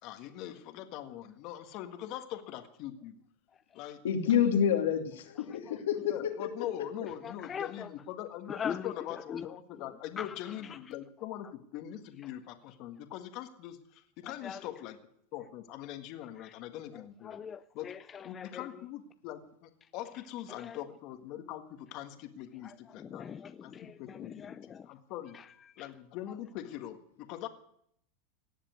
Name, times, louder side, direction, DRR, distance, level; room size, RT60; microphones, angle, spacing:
voice 1, 0.0-3.1 3.7-4.0 6.0-15.0 15.3-17.4 17.7-17.9 18.2-23.2 23.6-23.7 24.0-24.5 24.8-25.4 25.8-27.5, left 12 dB, 55° left, 1.7 m, -42 dB
voice 2, 4.0-6.1, left 8 dB, 85° left, 2.5 m, -27 dB
voice 3, 7.2-7.9 8.5-8.9 9.3-9.5 10.2-10.3 14.4-14.6 17.3-18.6 20.6-20.8 23.0-23.9 24.4-24.8, left 7 dB, 25° left, 0.5 m, -40 dB
18.0 x 7.4 x 9.5 m
hypercardioid pair, 115°, 0 cm